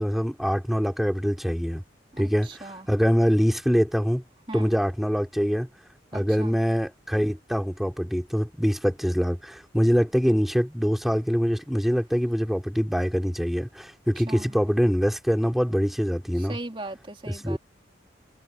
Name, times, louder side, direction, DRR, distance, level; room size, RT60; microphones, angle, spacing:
voice 1, 0.0-1.8 2.2-4.2 4.5-5.7 6.1-16.6 17.3-17.6, equal, ahead, 3.1 m, -24 dB
voice 2, 2.1-2.9 4.5-4.7 6.1-6.6 14.3-14.5 16.4-17.6, right 2 dB, 30° right, 3.2 m, -38 dB
head